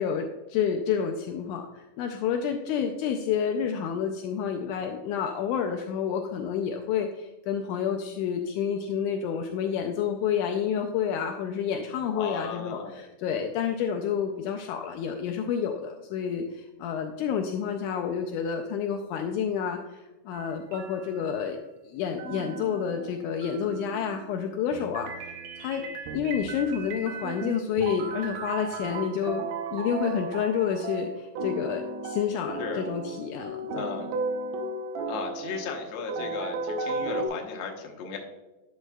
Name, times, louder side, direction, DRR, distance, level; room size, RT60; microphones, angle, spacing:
voice 1, 0.0-21.6 21.8-25.9 26.1-33.9, left 7 dB, 80° left, 4 dB, 2.0 m, -29 dB
voice 2, 12.1-13.0 32.6-32.8 33.7-34.1 35.1-38.2, left 5 dB, 65° left, 1 dB, 1.9 m, -35 dB
sound 1, 20.3-21.6 22.2-37.3, right 3 dB, 80° right, 2.3 m, -35 dB
11.0 x 6.3 x 2.3 m, 1.1 s
omnidirectional pair, 3.7 m